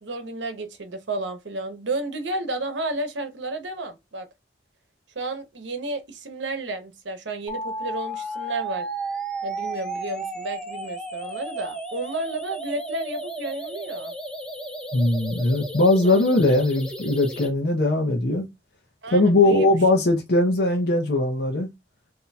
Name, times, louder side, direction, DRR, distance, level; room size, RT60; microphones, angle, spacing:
voice 1, 0.0-4.3 5.1-8.9 9.4-14.1 16.0-16.2 19.0-19.7, right 2 dB, 85° right, 0.8 m, -32 dB
sound 1, 7.5-17.5, right 2 dB, 5° left, 0.6 m, -33 dB
voice 2, 14.9-18.5 19.1-21.7, left 2 dB, 65° left, 0.7 m, -20 dB
4.0 x 2.7 x 2.2 m
head